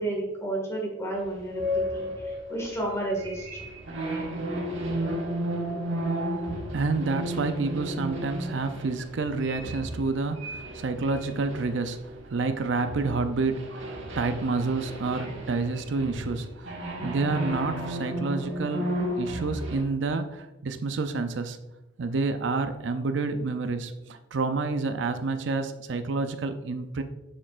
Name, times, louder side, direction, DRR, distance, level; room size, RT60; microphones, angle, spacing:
voice 1, 0.0-3.6, right 1 dB, 15° left, -1 dB, 1.9 m, -32 dB
sound 1, 1.4-12.5 12.8-19.8, equal, 85° right, 1.5 m, -33 dB
voice 2, 6.3-18.9 19.2-21.6 22.0-27.0, right 3 dB, 70° right, 8 dB, 0.5 m, -29 dB
7.4 x 6.5 x 2.5 m, 1.0 s
head